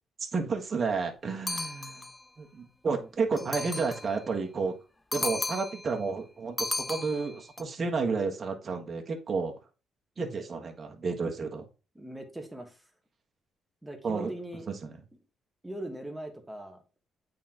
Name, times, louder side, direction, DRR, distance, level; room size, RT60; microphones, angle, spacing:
voice 1, 0.3-2.1 2.4-4.8 5.1-9.5 10.2-11.6 14.0-14.3 14.8-14.9, right 4 dB, 40° right, 2 dB, 1.4 m, -31 dB
sound 1, 1.5-2.2 3.4-4.1 5.1-5.9 6.6-7.6, left 2 dB, 20° left, 0.4 m, -34 dB
voice 2, 11.9-12.8 13.8-14.7 15.6-16.8, right 1 dB, 10° right, 4 dB, 1.4 m, -40 dB
8.3 x 3.9 x 2.9 m, 0.32 s
cardioid pair, 90°, 0 cm